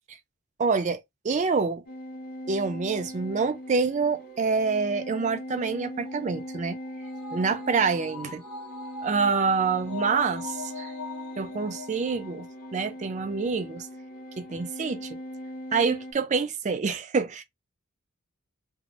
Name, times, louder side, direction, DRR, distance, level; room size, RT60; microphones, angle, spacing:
voice 1, 0.6-1.8 2.5-6.8 7.3-8.4 9.0-10.9 11.4-12.5 12.7-13.9 14.4-15.2 15.7-17.4, right 5 dB, 35° right, 0.3 m, -27 dB
sound 1, 1.9-16.1, equal, 45° left, 0.8 m, -40 dB
sound 2, 6.0-12.7 13.1-13.2, left 3 dB, 85° left, 1.1 m, -42 dB
2.6 x 2.0 x 2.9 m
head